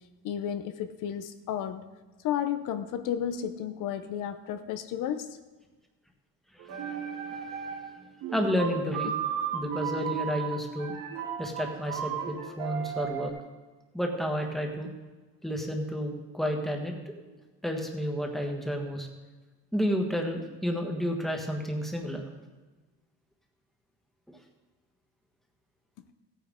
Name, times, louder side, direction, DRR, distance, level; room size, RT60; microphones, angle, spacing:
voice 1, 0.2-1.9 2.2-5.4, left 9 dB, 70° left, 10 dB, 0.8 m, -32 dB
voice 2, 6.5-7.4 8.3-9.1 9.5-10.9 11.4-13.3 13.9-14.9 15.4-17.3 17.6-19.1 19.7-22.2 24.3-24.4, equal, ahead, 2 dB, 1.4 m, -31 dB
sound 1, 6.6-8.0 8.2-13.3, right 8 dB, 85° right, 2.8 m, -35 dB
15.5 x 9.3 x 3.7 m, 1.3 s
cardioid pair, 140°, 33 cm